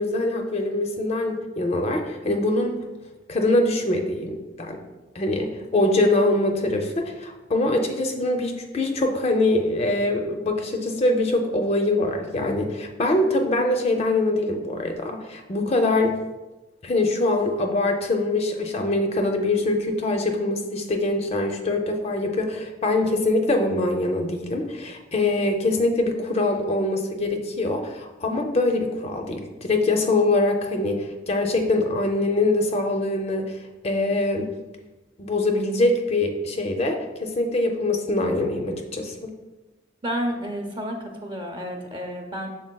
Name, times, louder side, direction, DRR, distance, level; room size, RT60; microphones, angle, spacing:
voice 1, 0.0-2.8 3.3-4.8 5.1-16.2 16.8-33.5 33.8-34.5 35.2-39.3, left 2 dB, 35° left, 4 dB, 0.4 m, -23 dB
voice 2, 40.0-42.5, equal, 25° right, 2 dB, 0.6 m, -30 dB
6.3 x 3.8 x 2.2 m, 1.1 s
head